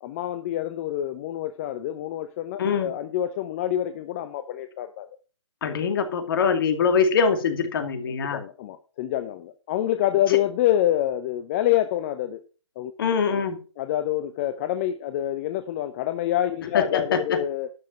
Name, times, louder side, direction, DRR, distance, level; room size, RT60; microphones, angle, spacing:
voice 1, 0.0-5.1 8.1-12.4 12.8-12.9 13.8-17.7, left 12 dB, 30° left, 9 dB, 0.7 m, -27 dB
voice 2, 2.6-2.9 5.6-8.4 13.0-13.6 16.7-17.4, left 6 dB, 50° left, 7 dB, 2.3 m, -23 dB
12.0 x 5.1 x 7.5 m, 0.36 s
hypercardioid pair, 145°, 15 cm